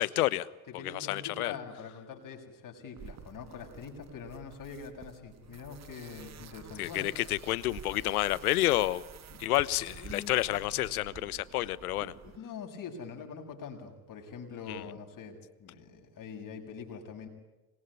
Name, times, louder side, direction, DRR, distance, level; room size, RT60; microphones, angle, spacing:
voice 1, 0.0-1.6 6.8-9.0 9.4-12.1 14.7-14.8, left 16 dB, 75° left, 19 dB, 1.2 m, -29 dB
voice 2, 0.7-7.1 9.3-9.4 10.0-10.3 12.2-17.3, left 6 dB, 45° left, 3 dB, 7.2 m, -44 dB
sound 1, 3.0-12.4, right 8 dB, 35° right, 1.6 m, -50 dB
26.0 x 22.0 x 10.0 m, 1.1 s
hypercardioid pair, 65°, 45 cm